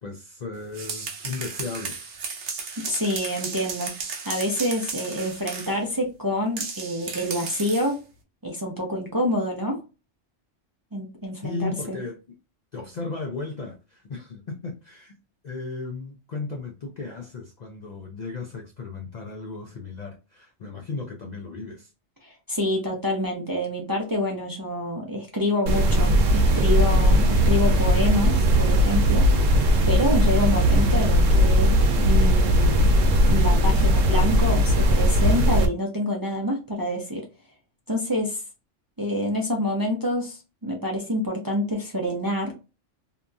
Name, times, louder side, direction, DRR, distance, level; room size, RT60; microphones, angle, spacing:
voice 1, 0.0-2.1 11.4-12.2 12.7-15.2 15.4-21.9, left 3 dB, 50° left, 0.5 m, -35 dB
sound 1, 0.6-5.8 6.6-7.9, right 5 dB, 60° right, 0.9 m, -34 dB
voice 2, 2.8-3.9 4.3-8.0 8.4-9.8 10.9-12.0 22.2-29.3 29.8-32.8 33.3-37.2 37.9-38.4 39.0-42.5, equal, 25° right, 0.5 m, -27 dB
sound 2, 25.7-35.7, equal, 85° right, 1.0 m, -19 dB
2.8 x 2.5 x 2.2 m
omnidirectional pair, 1.3 m